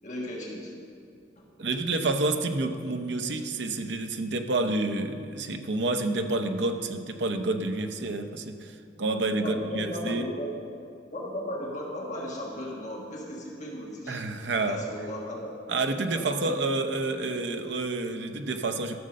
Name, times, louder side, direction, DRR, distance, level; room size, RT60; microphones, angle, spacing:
voice 1, 0.0-0.7 1.4-1.5 9.4-10.5 11.1-14.2 14.7-15.5 16.1-16.5, left 1 dB, 40° left, -2 dB, 1.5 m, -36 dB
voice 2, 1.6-10.2 14.1-14.8 15.7-19.0, right 2 dB, 75° right, 7 dB, 0.8 m, -29 dB
14.0 x 6.6 x 6.4 m, 2.4 s
head